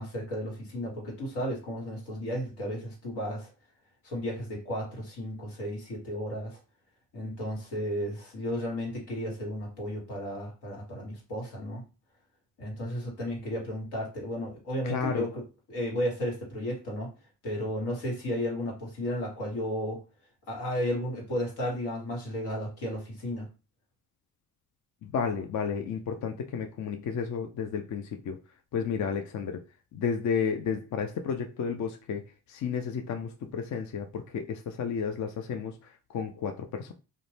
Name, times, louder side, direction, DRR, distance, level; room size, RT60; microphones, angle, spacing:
voice 1, 0.0-3.5 4.0-6.6 7.1-11.8 12.6-15.4 15.7-17.1 17.4-20.0 20.5-23.5, equal, 75° left, 1.4 m, -33 dB
voice 2, 14.8-15.3 25.0-28.4 28.7-29.6 29.9-32.2 32.5-35.8 36.1-36.9, left 6 dB, 50° left, 0.5 m, -32 dB
2.5 x 2.1 x 3.2 m
hypercardioid pair, 45°, 40 cm